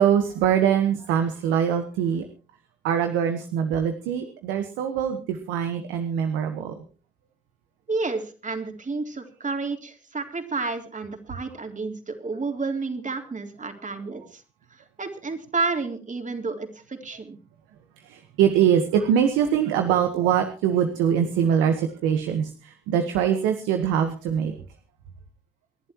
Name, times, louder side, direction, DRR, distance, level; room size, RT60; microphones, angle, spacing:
voice 1, 0.0-2.2 2.8-6.7 18.0-24.6, right 8 dB, 90° right, 7 dB, 1.4 m, -23 dB
voice 2, 7.9-14.4 14.7-17.4, right 3 dB, 40° right, 4 dB, 3.8 m, -31 dB
27.5 x 11.5 x 3.0 m, 0.36 s
supercardioid pair, 45°, 20 cm